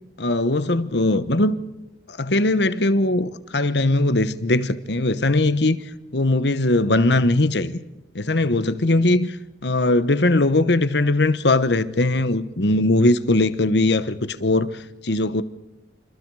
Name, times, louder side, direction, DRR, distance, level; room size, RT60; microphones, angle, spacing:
voice 1, 0.2-1.6 2.1-5.8 6.1-7.8 8.1-9.4 9.6-14.7 15.0-15.4, left 2 dB, 70° left, 1.2 m, -20 dB
27.5 x 26.5 x 4.9 m
head